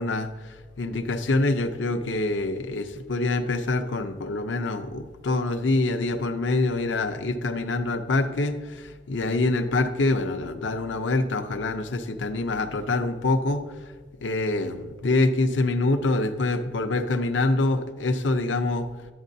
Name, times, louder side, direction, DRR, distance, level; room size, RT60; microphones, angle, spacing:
voice 1, 0.0-13.6 14.2-19.1, left 2 dB, 80° left, 8 dB, 0.6 m, -25 dB
11.0 x 8.2 x 2.7 m, 1.4 s
head